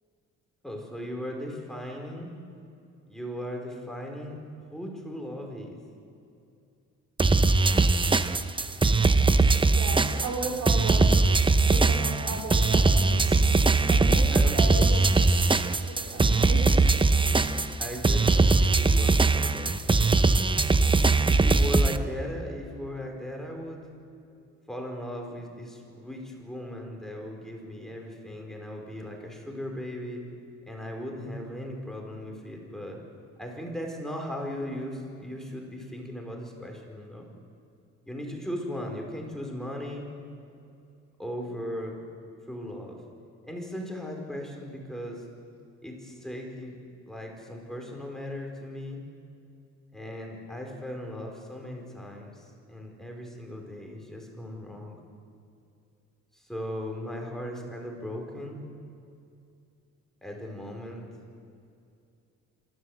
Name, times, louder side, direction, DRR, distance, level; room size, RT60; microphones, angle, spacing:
voice 1, 0.6-2.3 3.1-4.4 4.7-5.8 14.3-14.9 17.8-20.4 21.2-23.9 24.7-30.2 30.7-33.0 33.4-37.3 38.1-40.1 41.2-42.0 42.5-43.0 43.4-45.2 45.8-46.8 47.1-49.0 49.9-55.0 56.3-58.6 60.2-61.1, equal, ahead, 1 dB, 4.7 m, -37 dB
sound 1, 7.2-22.0, right 3 dB, 15° right, 0.8 m, -21 dB
voice 2, 9.7-11.2 11.7-13.4 13.9-15.1 15.6-16.8, right 3 dB, 85° right, -1 dB, 4.2 m, -35 dB
26.5 x 13.0 x 8.0 m, 2.6 s
cardioid pair, 90°, 30 cm